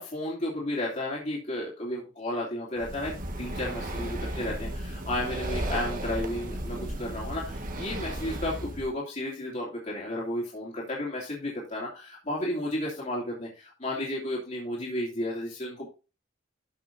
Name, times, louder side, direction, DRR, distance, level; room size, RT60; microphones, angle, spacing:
voice 1, 0.0-15.9, left 1 dB, 40° left, -4 dB, 3.0 m, -33 dB
Breathing, 2.8-8.9, right 1 dB, 45° right, 1.6 m, -34 dB
13.0 x 6.1 x 2.7 m, 0.31 s
head